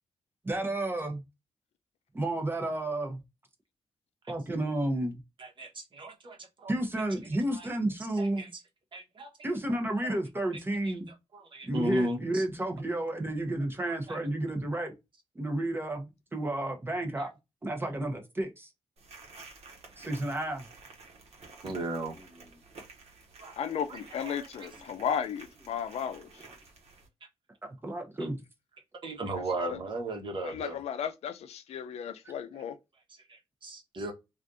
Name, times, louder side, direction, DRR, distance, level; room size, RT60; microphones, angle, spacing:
voice 1, 0.4-1.2 2.1-3.2 4.3-5.2 6.7-8.5 9.4-11.1 11.6-14.9 15.3-17.3 17.6-18.7 20.0-20.7 27.6-28.4, right 1 dB, 20° right, 0.7 m, -31 dB
voice 2, 5.4-6.7 7.5-7.7 8.2-8.6 8.9-9.3 9.7-10.2 10.8-11.0 11.3-12.4 13.8-14.2 21.6-22.2 23.4-24.7 28.2-28.3 29.0-30.8 33.3-34.1, right 1 dB, 50° right, 1.0 m, -37 dB
sound 1, 19.0-27.1, right 3 dB, 80° right, 1.1 m, -52 dB
voice 3, 23.6-26.4 29.6-29.8 30.4-32.8, left 8 dB, 85° left, 0.4 m, -34 dB
3.5 x 2.5 x 2.5 m
wide cardioid pair, 125°, 11 cm